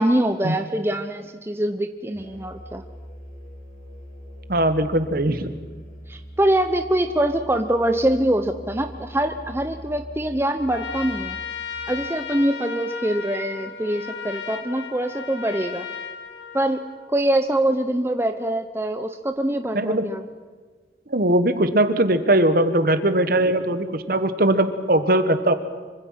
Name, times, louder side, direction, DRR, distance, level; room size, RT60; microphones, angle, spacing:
voice 1, 0.0-2.8 6.1-11.4 11.9-15.9 16.5-16.8 17.1-20.3, right 1 dB, 15° right, 7 dB, 0.8 m, -24 dB
Musical instrument, 2.1-12.0, equal, 40° left, 6.7 m, -42 dB
voice 2, 4.5-5.5 19.7-20.1 21.1-25.5, right 1 dB, 55° right, 10 dB, 1.5 m, -20 dB
Trumpet, 10.6-17.1, left 6 dB, 75° left, 2.2 m, -35 dB
26.0 x 24.5 x 5.9 m, 1.5 s
head